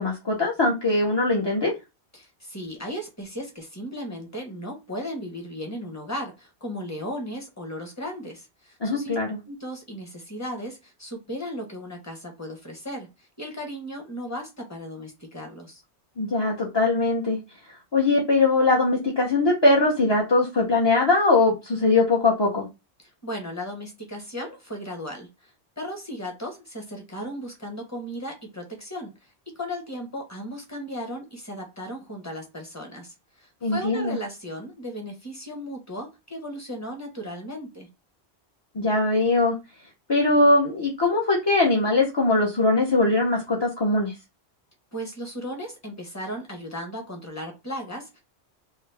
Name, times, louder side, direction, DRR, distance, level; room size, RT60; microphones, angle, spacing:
voice 1, 0.0-1.7 8.8-9.4 16.2-17.4 17.9-22.7 33.6-34.2 38.7-39.6 40.1-44.1, left 2 dB, 30° left, -2 dB, 0.5 m, -21 dB
voice 2, 2.1-9.2 9.4-15.8 23.0-37.9 44.9-48.2, equal, 15° left, 2 dB, 1.0 m, -36 dB
3.2 x 2.2 x 3.3 m, 0.25 s
omnidirectional pair, 1.1 m